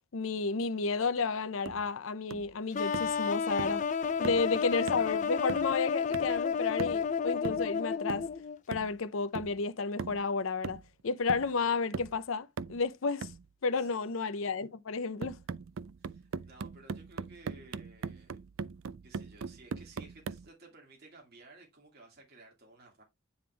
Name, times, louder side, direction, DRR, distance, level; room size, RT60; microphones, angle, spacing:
voice 1, 0.1-3.8 4.2-8.2 8.7-13.3 13.6-15.4, left 4 dB, 85° left, 0.6 m, -32 dB
sound 1, 1.7-1.9 2.3-2.5 2.9-3.2 3.6-3.8 4.2-4.5 4.9-5.1 5.5-5.8 6.1-6.4 6.8-7.1 7.4-7.7 8.1-8.4 8.7-9.0 9.3-9.6 10.0-10.3 10.6-11.0 11.3-11.6 11.9-12.2 12.6-12.8 13.2-13.5 15.2-20.5, right 5 dB, 80° right, 0.4 m, -40 dB
sound 2, 2.7-8.6, left 6 dB, 40° left, 0.4 m, -31 dB
voice 2, 13.7-14.1 16.0-18.4 19.0-23.0, right 2 dB, 50° right, 2.3 m, -56 dB
9.5 x 3.5 x 3.3 m
head